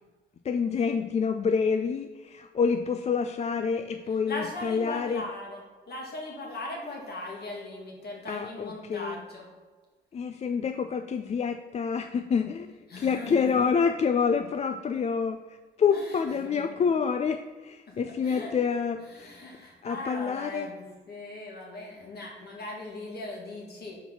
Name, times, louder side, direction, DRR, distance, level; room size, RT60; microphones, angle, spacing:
voice 1, 0.4-5.3 8.3-9.2 10.1-19.4 19.8-20.7, left 6 dB, 35° left, 7 dB, 0.3 m, -27 dB
voice 2, 4.3-5.6 5.9-9.4 12.9-13.5 15.9-16.1 16.4-16.6 18.0-18.5 19.1-24.0, left 2 dB, 55° left, -1 dB, 2.2 m, -39 dB
5.5 x 4.5 x 5.6 m, 1.4 s
cardioid pair, 90°, 20 cm